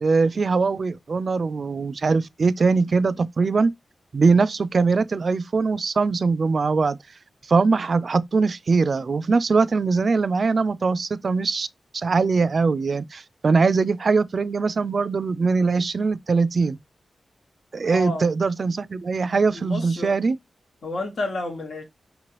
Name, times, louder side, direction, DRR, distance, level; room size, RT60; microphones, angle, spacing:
voice 1, 0.0-3.7 4.1-7.0 7.5-11.7 11.9-16.8 17.7-20.4, right 4 dB, 55° right, 0.4 m, -21 dB
voice 2, 17.9-18.2 19.5-20.2 20.8-21.8, left 2 dB, 70° left, 1.2 m, -30 dB
5.3 x 3.0 x 2.9 m
cardioid pair, 75°, 0 cm